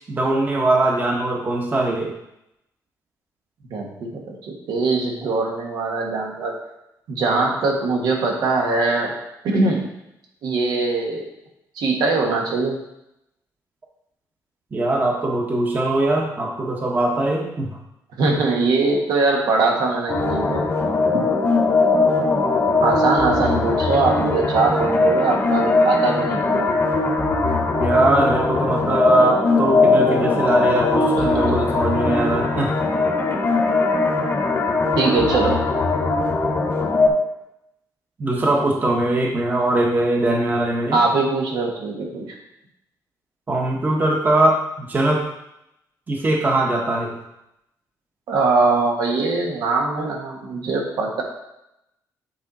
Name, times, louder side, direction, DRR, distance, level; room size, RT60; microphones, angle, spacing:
voice 1, 0.1-2.1 14.7-17.7 27.7-32.7 38.2-41.0 43.5-45.2 46.1-47.2, right 2 dB, 25° right, 0 dB, 1.0 m, -21 dB
voice 2, 3.7-6.5 7.1-9.1 9.4-9.9 10.4-11.3 11.7-12.8 18.2-20.7 22.8-26.7 31.2-31.6 35.0-35.8 40.9-42.2 48.3-51.2, right 3 dB, 85° right, 0 dB, 1.6 m, -21 dB
sound 1, 20.1-37.1, left 3 dB, 35° left, 1.0 m, -20 dB
8.4 x 4.5 x 4.1 m, 0.84 s
cardioid pair, 155°, 7 cm